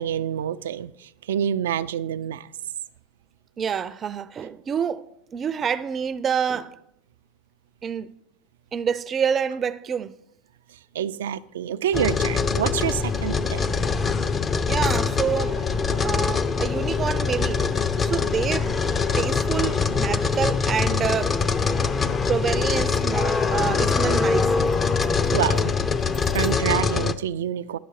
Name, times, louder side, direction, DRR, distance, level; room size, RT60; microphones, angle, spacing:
voice 1, 0.0-2.5 10.9-13.6 25.3-25.8 26.3-27.8, right 10 dB, 85° right, 0.4 m, -27 dB
voice 2, 3.6-6.8 7.8-8.2 8.7-10.1 14.7-15.6 15.9-17.7 18.0-18.7 19.2-21.4 22.0-24.5 24.8-24.9, right 7 dB, 30° right, 0.5 m, -27 dB
sound 1, 11.9-27.1, left 5 dB, 25° left, 0.6 m, -23 dB
11.0 x 6.5 x 4.8 m
hypercardioid pair, 100°, 0 cm